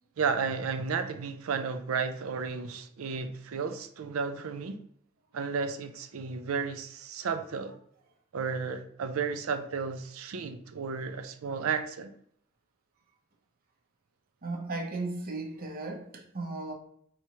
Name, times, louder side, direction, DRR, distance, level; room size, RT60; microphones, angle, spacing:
voice 1, 0.2-4.8 5.3-7.7 8.3-12.1, right 5 dB, 85° right, 0.4 m, -33 dB
voice 2, 14.4-16.7, right 2 dB, 45° right, 0.8 m, -36 dB
4.7 x 3.0 x 2.8 m
head